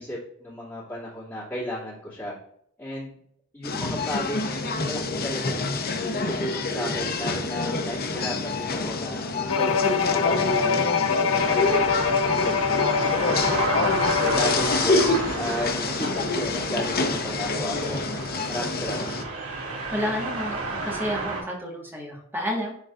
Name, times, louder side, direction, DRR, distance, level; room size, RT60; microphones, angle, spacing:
voice 1, 0.0-2.4 2.8-3.1 3.5-5.7 6.1-9.2 9.6-13.7 14.3-18.0 18.5-19.1, equal, 15° left, -12 dB, 2.5 m, -34 dB
sound 1, 3.6-19.2, left 3 dB, 45° left, 0.8 m, -27 dB
Bowed string instrument, 9.5-14.8, left 6 dB, 75° left, 0.7 m, -24 dB
sound 2, 11.4-21.4, right 3 dB, 90° right, 2.4 m, -32 dB
voice 2, 19.9-22.7, equal, 10° right, -2 dB, 1.6 m, -30 dB
11.0 x 3.8 x 2.5 m, 0.68 s
head